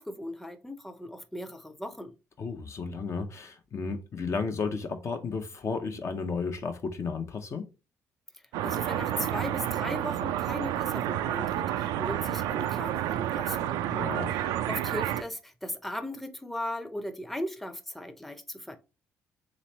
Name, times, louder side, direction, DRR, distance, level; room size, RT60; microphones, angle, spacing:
voice 1, 0.0-2.2 8.6-13.8 14.7-18.8, left 1 dB, 5° left, 0.6 m, -37 dB
voice 2, 2.4-7.7 13.9-14.4, left 4 dB, 45° left, 0.7 m, -33 dB
sound 1, 8.5-15.2, right 11 dB, 75° right, 0.3 m, -30 dB
3.4 x 3.1 x 4.1 m
hypercardioid pair, 50°, 7 cm